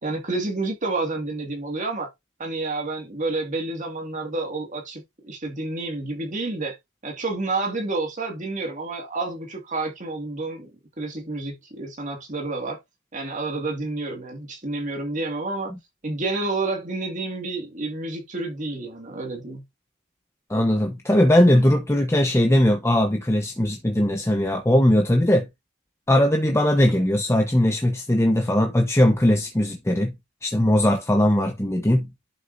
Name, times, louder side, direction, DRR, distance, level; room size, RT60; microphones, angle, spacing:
voice 1, 0.0-2.1 2.4-6.8 7.0-10.7 11.0-12.8 13.1-15.7 16.0-19.6, right 3 dB, 35° right, 2.2 m, -29 dB
voice 2, 20.5-25.5 26.1-30.1 30.4-32.1, left 1 dB, 10° left, 0.9 m, -19 dB
11.0 x 6.3 x 2.7 m
head